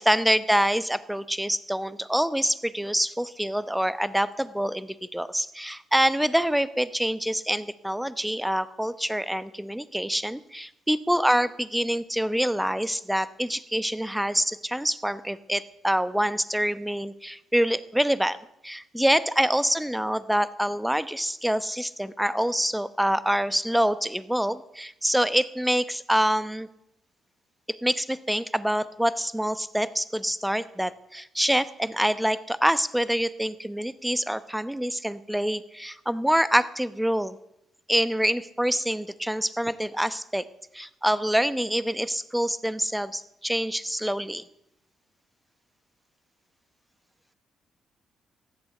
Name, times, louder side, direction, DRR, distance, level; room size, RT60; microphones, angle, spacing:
voice 1, 0.0-18.4 18.6-26.7 27.8-37.4 37.9-40.4 40.7-44.4, equal, 5° right, 14 dB, 0.9 m, -26 dB
15.0 x 11.5 x 8.2 m, 0.80 s
cardioid pair, 90°, 0 cm